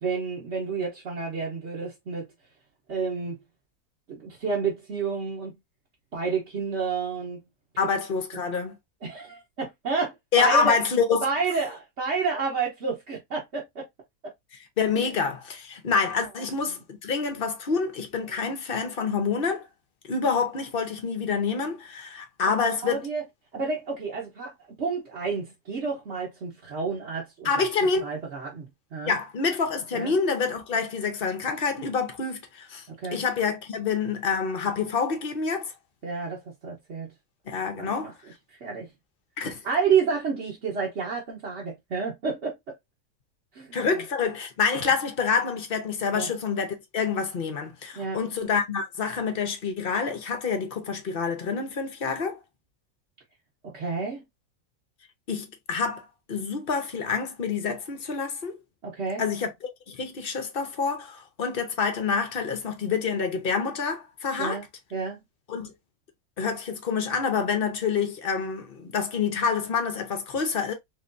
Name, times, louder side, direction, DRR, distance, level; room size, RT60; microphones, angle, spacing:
voice 1, 0.0-2.3 2.9-3.4 4.1-5.5 6.1-7.4 9.0-10.7 11.2-13.9 15.0-15.1 16.6-16.7 22.5-23.2 23.5-27.5 28.0-29.2 29.9-30.1 33.0-33.2 36.0-37.1 37.8-38.1 38.5-38.9 39.6-42.6 43.5-43.9 46.1-46.3 47.9-48.2 53.6-54.2 58.8-59.2 64.4-64.7 64.9-65.2, right 5 dB, 50° right, 1.2 m, -30 dB
voice 2, 7.8-8.8 10.3-11.2 14.8-19.7 20.0-23.1 27.4-28.1 29.0-32.9 33.1-35.7 37.5-38.1 39.4-39.6 43.7-52.4 55.3-58.6 59.2-59.5 59.9-64.6 65.5-65.7 66.4-70.7, left 5 dB, 45° left, 0.9 m, -27 dB
3.8 x 3.2 x 2.6 m
omnidirectional pair, 1.6 m